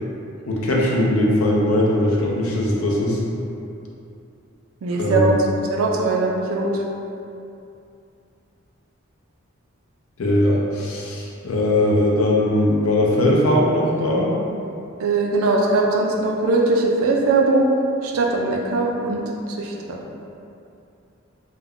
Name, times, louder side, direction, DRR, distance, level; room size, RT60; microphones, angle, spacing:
voice 1, 0.5-3.2 4.9-5.3 10.2-14.3, left 1 dB, 90° left, -3 dB, 0.5 m, -19 dB
voice 2, 4.8-5.3 5.7-6.8 15.0-17.7 18.0-19.2 19.5-20.0, right 3 dB, 80° right, -1 dB, 0.4 m, -20 dB
2.3 x 2.1 x 3.5 m, 2.6 s
head